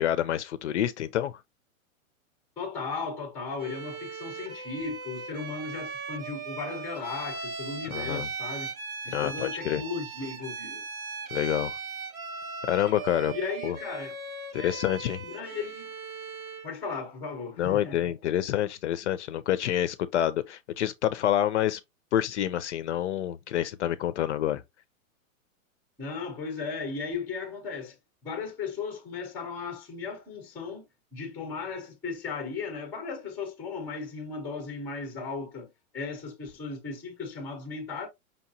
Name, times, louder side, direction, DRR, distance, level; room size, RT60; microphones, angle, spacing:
voice 1, 0.0-1.4 7.9-8.3 9.1-9.8 11.3-11.8 12.6-13.3 13.6-13.8 14.5-15.3 17.6-21.8 22.1-24.6, left 11 dB, 55° left, 0.5 m, -27 dB
voice 2, 2.6-8.7 9.0-10.8 13.3-14.2 14.6-14.8 15.2-15.9 16.6-18.1 26.0-27.9 28.2-30.8 31.1-35.7 35.9-38.1, left 4 dB, 5° left, 0.5 m, -36 dB
Bowed string instrument, 3.6-16.8, right 4 dB, 90° right, 1.4 m, -38 dB
5.3 x 2.9 x 2.6 m
hypercardioid pair, 160°, 42 cm